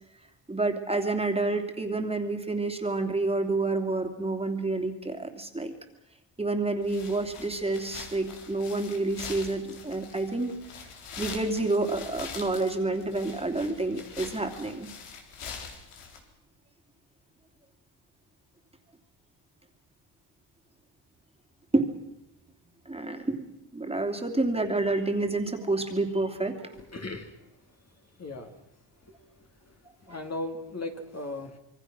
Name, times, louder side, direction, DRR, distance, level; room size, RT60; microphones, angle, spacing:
voice 1, 0.5-5.7 6.4-10.5 11.2-14.9 21.7-21.9 22.9-26.7, right 2 dB, 10° right, 4 dB, 2.8 m, -29 dB
sound 1, 6.8-16.2, left 5 dB, 90° left, 4.1 m, -44 dB
voice 2, 26.7-28.6 28.9-31.6, left 2 dB, 30° left, 4 dB, 2.5 m, -39 dB
26.5 x 23.0 x 6.2 m, 0.85 s
cardioid pair, 110°, 50 cm